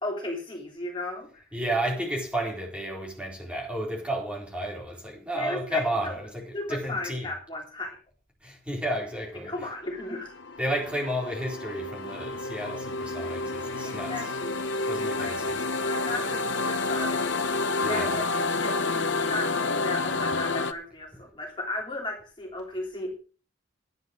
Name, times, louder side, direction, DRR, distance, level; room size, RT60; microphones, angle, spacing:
voice 1, 0.0-1.4 5.3-6.2 6.5-8.0 9.4-10.3 13.8-14.6 14.9-17.3 17.9-18.3 18.6-23.2, left 2 dB, 25° left, 3.2 m, -35 dB
voice 2, 1.5-7.4 8.4-9.7 10.6-14.4 14.8-15.7 17.8-18.3 19.9-20.2 21.1-21.2, right 1 dB, 5° right, 3.9 m, -32 dB
sound 1, 10.0-20.7, left 3 dB, 70° left, 1.0 m, -29 dB
11.0 x 9.5 x 6.2 m
head